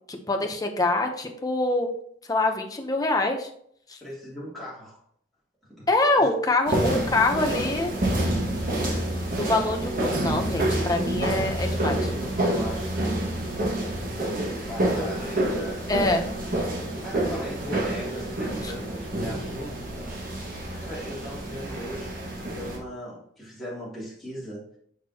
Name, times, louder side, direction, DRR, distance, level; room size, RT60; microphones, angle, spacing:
voice 1, 0.1-1.9 2.3-3.5 3.9-4.0 5.9-7.9 9.3-12.1 15.9-16.3 18.6-18.7, left 2 dB, 20° left, 3 dB, 0.9 m, -25 dB
voice 2, 4.0-5.0 5.7-5.9 6.2-6.3 12.1-15.8 17.0-19.9 20.7-22.2 22.5-24.7, equal, ahead, -8 dB, 2.9 m, -38 dB
sound 1, 6.7-22.8, right 1 dB, 50° right, 1.9 m, -28 dB
6.7 x 6.1 x 2.9 m, 0.65 s
head